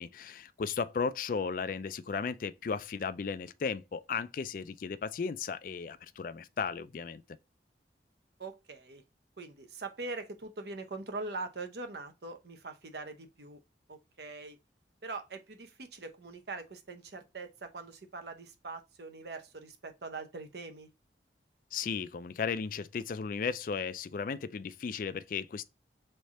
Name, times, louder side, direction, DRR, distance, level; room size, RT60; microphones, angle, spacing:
voice 1, 0.0-7.2 21.7-25.6, left 5 dB, 50° left, 0.3 m, -35 dB
voice 2, 8.4-9.0 9.4-13.6 13.9-14.6 15.0-20.9, right 3 dB, 65° right, 0.8 m, -42 dB
3.6 x 3.3 x 4.1 m
head